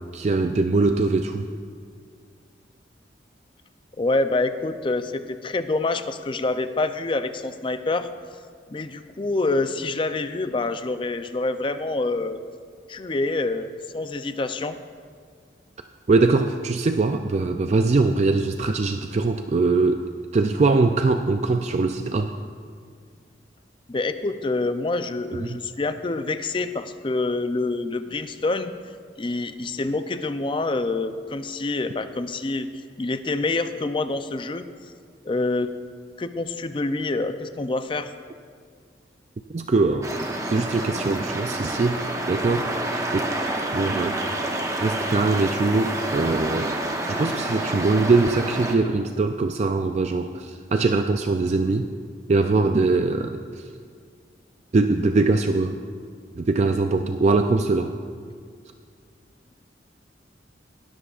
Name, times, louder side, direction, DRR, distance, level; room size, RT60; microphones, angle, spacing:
voice 1, 0.1-1.5 16.1-20.0 20.3-22.3 39.5-40.1 40.5-42.0 42.3-42.7 43.1-43.3 43.7-44.3 44.8-46.7 47.1-51.9 52.3-53.4 54.7-55.8 56.4-57.9, right 3 dB, 40° right, 6 dB, 0.4 m, -22 dB
voice 2, 4.0-8.1 8.7-12.4 12.9-14.8 23.9-28.7 29.2-32.7 33.0-34.7 35.2-35.7 36.2-38.1, left 2 dB, 30° left, 10 dB, 0.4 m, -26 dB
sound 1, 40.0-48.7, right 1 dB, 20° right, 0.9 m, -28 dB
21.0 x 12.5 x 2.4 m, 2.1 s
head